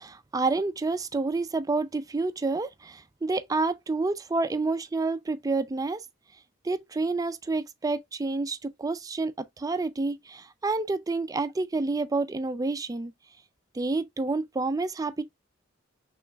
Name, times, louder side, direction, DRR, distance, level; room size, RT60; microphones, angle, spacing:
voice 1, 0.0-6.0 6.6-13.1 13.7-15.2, right 3 dB, 20° right, 0.4 m, -29 dB
6.4 x 3.1 x 2.3 m
head